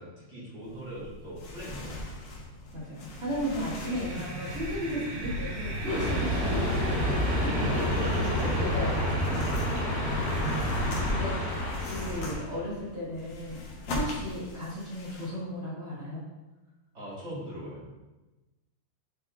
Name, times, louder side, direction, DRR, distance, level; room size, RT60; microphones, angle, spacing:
voice 1, 0.0-2.1 7.3-8.7 16.9-17.8, right 1 dB, 20° right, -9 dB, 1.9 m, -40 dB
sound 1, 0.6-15.3, left 1 dB, 75° left, 1.7 m, -40 dB
voice 2, 2.7-6.6 7.3-7.9 8.1-8.3 8.6-9.2 10.3-13.6 13.9-16.2, equal, 40° right, -9 dB, 0.9 m, -35 dB
sound 2, 3.4-12.6, equal, 70° right, 2.2 m, -31 dB
sound 3, 5.9-12.4, left 2 dB, 50° left, 2.1 m, -32 dB
9.6 x 4.7 x 3.9 m, 1.1 s
omnidirectional pair, 5.5 m